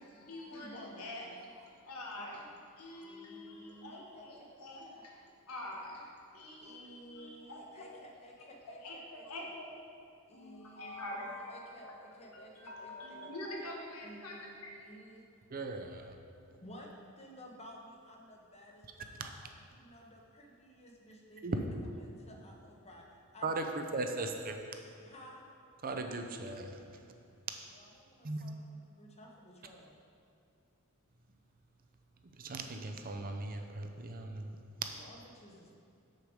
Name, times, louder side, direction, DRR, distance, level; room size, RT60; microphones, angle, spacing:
voice 1, 0.0-1.2 1.5-2.4 2.8-5.2 5.5-6.0 6.3-7.9 8.8-9.6 10.3-12.0 12.3-14.7, left 1 dB, 85° left, -1 dB, 1.4 m, -45 dB
voice 2, 0.5-1.3 2.2-2.5 3.0-5.0 5.7-6.1 6.6-9.5 10.3-13.3 14.0-15.2 16.6-16.9 17.2-23.0 23.3-23.7 24.1-24.2 25.0-25.4 27.7-30.0 35.0-35.8, equal, 30° left, 0 dB, 1.1 m, -54 dB
voice 3, 15.5-16.1 19.2-19.3 21.4-21.6 23.4-24.6 25.8-26.8 28.2-28.4 32.4-34.5, right 2 dB, 40° right, 5 dB, 0.6 m, -37 dB
6.8 x 6.6 x 4.7 m, 2.7 s
head